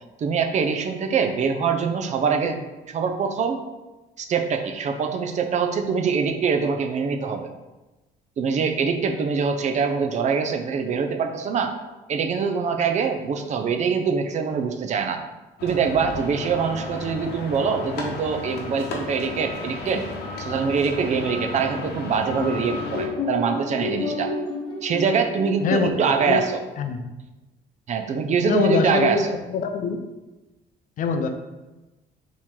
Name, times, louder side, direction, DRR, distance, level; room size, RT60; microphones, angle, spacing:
voice 1, 0.2-2.6 2.9-3.6 4.2-7.5 8.4-11.7 12.1-15.2 15.6-20.1 20.4-24.3 24.8-26.6 27.9-29.4, right 5 dB, 45° right, 5 dB, 0.5 m, -24 dB
sound 1, 15.6-23.1, left 3 dB, 75° left, 0.9 m, -34 dB
sound 2, 22.4-26.1, left 3 dB, 30° left, 0.9 m, -30 dB
voice 2, 25.6-26.4 26.8-27.1 28.4-30.0 31.0-31.3, left 5 dB, 50° left, 6 dB, 0.5 m, -24 dB
4.4 x 3.0 x 3.6 m, 1.1 s
cardioid pair, 110°, 17 cm